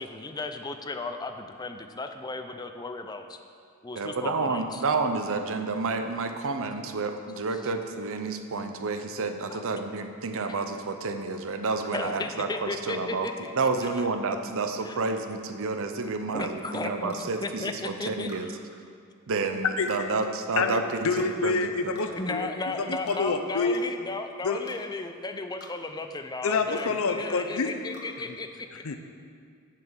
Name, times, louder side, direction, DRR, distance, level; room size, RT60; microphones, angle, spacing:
voice 1, 0.0-3.4 3.8-4.8 9.5-9.6 11.9-13.5 14.3-14.4 14.8-15.0 16.3-18.3 22.1-28.8, left 3 dB, 20° left, 7 dB, 0.5 m, -35 dB
voice 2, 4.0-13.3 13.5-18.5 19.3-21.6, right 3 dB, 65° right, 7 dB, 0.7 m, -30 dB
sound 1, 17.1-17.3 18.3-18.5 19.9-20.0 21.2-21.3 21.9-22.1 23.1-23.2 23.7-23.9 24.7-24.8 25.6-25.7 26.8-26.9 27.9-28.1, left 3 dB, 50° left, 1.2 m, -46 dB
voice 3, 20.6-23.8 24.4-24.6 26.4-27.7 28.8-29.0, left 4 dB, 70° left, 7 dB, 0.7 m, -27 dB
7.7 x 6.0 x 7.3 m, 2.3 s
head